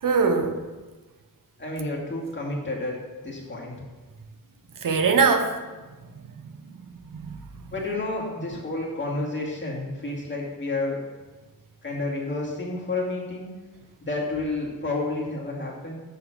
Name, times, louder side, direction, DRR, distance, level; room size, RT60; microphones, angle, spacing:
voice 1, 0.0-0.6 4.8-5.5 6.4-6.5 7.1-7.6, right 5 dB, 65° right, 6 dB, 1.0 m, -22 dB
voice 2, 1.6-3.7 7.7-11.0 11.8-13.5 14.0-16.0, left 2 dB, 30° left, -4 dB, 2.4 m, -30 dB
6.8 x 6.7 x 6.2 m, 1.2 s
wide cardioid pair, 140°, 35 cm